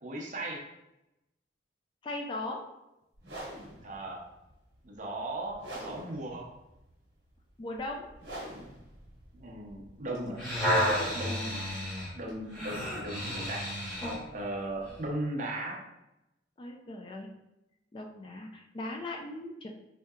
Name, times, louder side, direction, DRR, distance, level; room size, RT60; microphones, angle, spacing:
voice 1, 0.0-0.7 3.8-4.2 4.8-6.5 9.3-10.4 11.1-11.6 12.1-13.7 14.3-15.8, right 1 dB, 40° right, -1 dB, 0.7 m, -37 dB
voice 2, 2.0-2.6 7.6-8.1 16.6-17.3 17.9-19.7, left 2 dB, 25° left, 1 dB, 0.3 m, -38 dB
sound 1, 3.2-13.0, right 1 dB, 65° right, 1.1 m, -46 dB
sound 2, 10.1-14.2 14.9-15.0, equal, 5° left, 1.3 m, -31 dB
4.3 x 2.7 x 2.3 m, 0.91 s
head